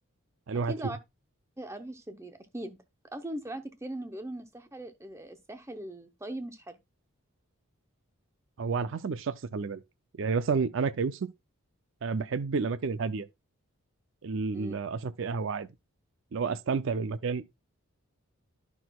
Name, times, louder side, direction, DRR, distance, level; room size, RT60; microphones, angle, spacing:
voice 1, 0.7-1.0 1.6-2.8 3.1-6.8 14.5-14.7, right 1 dB, 15° right, 0.7 m, -40 dB
voice 2, 8.6-9.8 10.2-11.3 12.0-13.3 14.2-15.7 16.3-17.5, right 5 dB, 60° right, 0.4 m, -30 dB
11.5 x 6.0 x 2.3 m
head